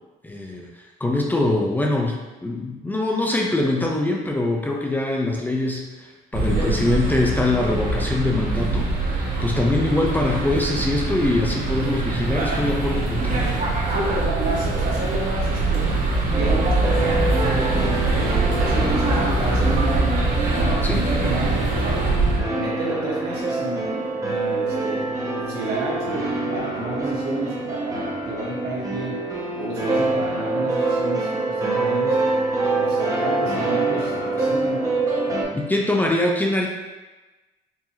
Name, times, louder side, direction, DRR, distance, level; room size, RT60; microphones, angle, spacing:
voice 1, 0.2-13.5 20.8-21.0 35.5-36.7, left 2 dB, 10° left, 0 dB, 0.5 m, -23 dB
sound 1, 6.3-22.4, right 2 dB, 55° right, 1.0 m, -23 dB
voice 2, 13.9-16.0 16.3-17.9 18.1-22.0 22.6-25.1 25.5-29.2 29.6-32.2 32.8-35.0 35.2-35.4, right 2 dB, 75° right, -5 dB, 1.3 m, -31 dB
sound 2, 16.3-35.4, right 2 dB, 20° right, 0.8 m, -25 dB
4.7 x 2.8 x 2.8 m, 1.1 s
cardioid pair, 110°, 17 cm